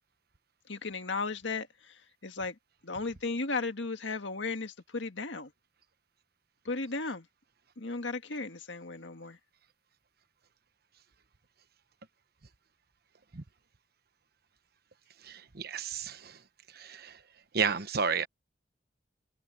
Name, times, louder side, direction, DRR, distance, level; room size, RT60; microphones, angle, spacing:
voice 1, 0.7-2.6 2.8-5.5 6.7-7.3 7.8-9.4, left 3 dB, 85° left, 1.8 m, -35 dB
voice 2, 15.2-16.4 16.7-17.2 17.5-18.3, right 6 dB, 60° right, 1.1 m, -32 dB
head